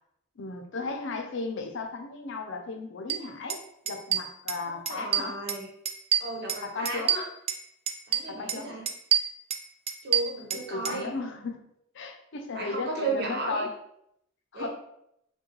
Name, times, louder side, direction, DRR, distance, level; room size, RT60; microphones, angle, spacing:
voice 1, 0.4-3.6 3.9-5.4 6.6-7.1 8.3-8.7 10.5-11.6 11.9-13.7 14.5-14.7, left 3 dB, 65° left, 4 dB, 0.6 m, -35 dB
sound 1, 3.1-3.2 3.5-3.6 3.9-4.6 4.9-5.6 5.9-7.6 7.9-8.6 8.9-11.0, right 9 dB, 30° right, 0.3 m, -27 dB
voice 2, 4.7-5.7 6.2-7.2 8.1-8.8 10.0-11.1 12.5-13.6 14.5-14.7, right 2 dB, 60° right, -1 dB, 1.1 m, -34 dB
4.8 x 2.2 x 3.0 m, 0.76 s
head